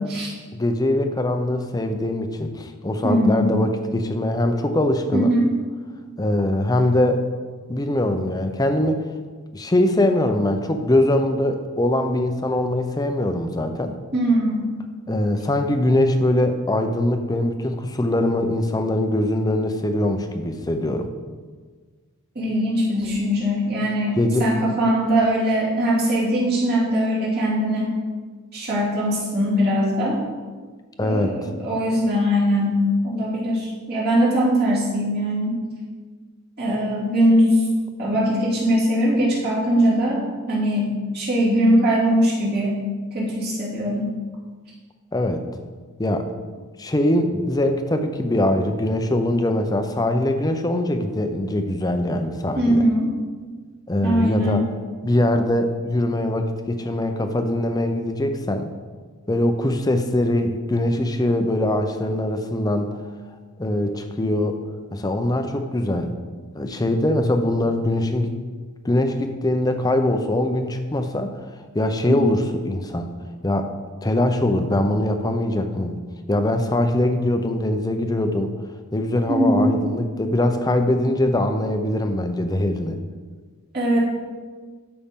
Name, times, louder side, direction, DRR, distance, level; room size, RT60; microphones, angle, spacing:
voice 1, 0.5-5.3 6.2-7.2 7.7-9.0 9.5-14.0 15.1-21.1 24.2-24.5 31.0-31.5 45.1-45.4 46.0-46.3 46.8-52.8 53.9-54.6 55.0-58.7 59.3-63.0 63.6-64.6 64.9-66.1 66.5-68.4 68.8-71.3 71.7-73.1 73.4-73.7 74.0-76.0 76.3-78.5 78.9-83.0, left 1 dB, 15° left, 7 dB, 0.6 m, -22 dB
voice 2, 3.0-3.5 5.1-5.5 14.1-14.7 22.3-28.0 28.5-30.2 31.0-32.8 33.0-35.6 36.6-37.7 38.0-42.7 43.1-44.1 52.5-53.1 54.0-54.6 72.1-72.2 79.3-79.7 83.7-84.0, equal, 45° right, -7 dB, 2.7 m, -21 dB
11.5 x 5.3 x 3.7 m, 1.5 s
head